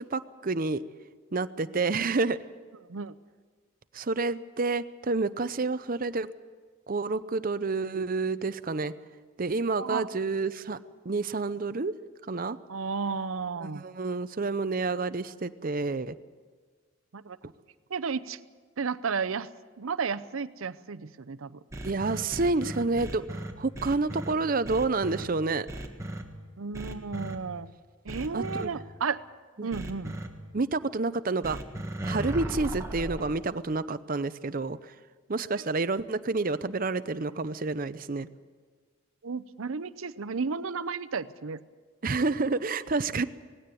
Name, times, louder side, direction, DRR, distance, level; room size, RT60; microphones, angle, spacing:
voice 1, 0.1-0.8 1.3-2.4 3.9-6.3 6.9-8.9 9.4-10.8 11.0-11.9 12.3-12.6 13.6-16.1 21.8-25.7 28.3-28.7 29.6-29.7 30.5-31.6 32.0-34.9 35.3-38.3 42.0-43.2, right 3 dB, 40° right, 13 dB, 0.6 m, -29 dB
voice 2, 12.7-13.8 17.1-17.4 17.9-18.4 18.8-19.5 19.8-21.6 26.6-27.7 28.0-29.2 29.6-30.2 39.2-41.6, right 5 dB, 80° right, 13 dB, 0.7 m, -33 dB
sound 1, 21.7-24.3 24.6-25.2 25.7-26.2 26.7-27.4 28.1-28.6 29.7-30.3 31.4-33.4, right 1 dB, 15° right, 1.5 m, -36 dB
19.0 x 16.5 x 9.1 m, 1.5 s
head